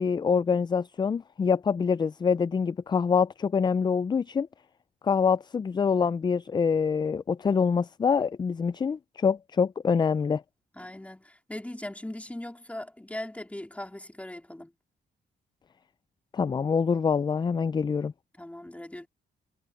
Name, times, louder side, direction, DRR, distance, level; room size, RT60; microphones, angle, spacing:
voice 1, 0.0-4.5 5.0-10.4 16.3-18.1, left 6 dB, 25° left, 0.3 m, -25 dB
voice 2, 10.7-14.7 18.4-19.1, left 1 dB, 5° left, 3.8 m, -40 dB
cardioid pair, 95°, 18 cm